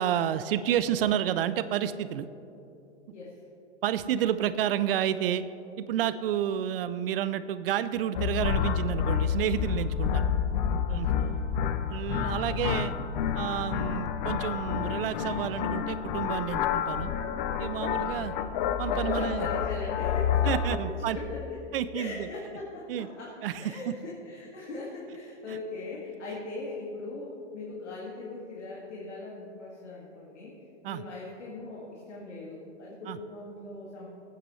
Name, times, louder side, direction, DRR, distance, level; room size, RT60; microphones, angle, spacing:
voice 1, 0.0-2.3 3.8-5.4 5.8-10.2 10.9-11.1 11.9-12.9 13.3-17.1 17.6-18.3 18.8-19.5 20.4-21.2 21.7-22.3 22.9-23.1 23.4-23.8 25.5-25.6 30.8-31.0 33.1-33.2, right 10 dB, 55° right, 14 dB, 0.6 m, -30 dB
sound 1, 8.1-20.8, left 8 dB, 45° left, 0.8 m, -29 dB
voice 2, 11.1-11.7 12.4-13.1 17.9-18.5 18.9-20.7 21.1-21.6 21.9-30.5 30.9-34.1, left 3 dB, 75° left, -4 dB, 2.2 m, -40 dB
19.5 x 9.2 x 3.2 m, 2.8 s
hypercardioid pair, 115°, 35 cm